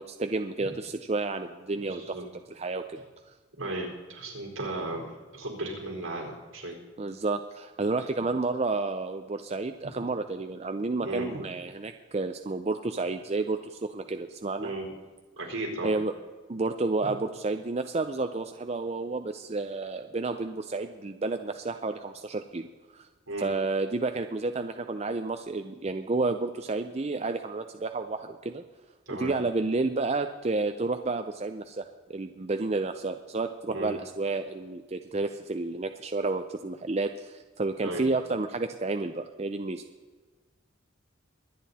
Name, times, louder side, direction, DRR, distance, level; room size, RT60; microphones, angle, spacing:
voice 1, 0.0-2.2 2.5-3.3 7.0-14.7 15.8-16.1 16.5-23.1 23.4-28.6 29.1-39.8, right 3 dB, 30° right, 7 dB, 0.5 m, -31 dB
voice 2, 1.8-2.2 3.6-6.8 11.0-11.4 14.6-14.9 15.4-15.9 17.0-17.1 23.3-23.5 29.1-29.3 33.7-33.9 37.8-38.0, right 2 dB, 75° right, 0 dB, 4.5 m, -35 dB
23.5 x 9.3 x 4.2 m, 1.4 s
head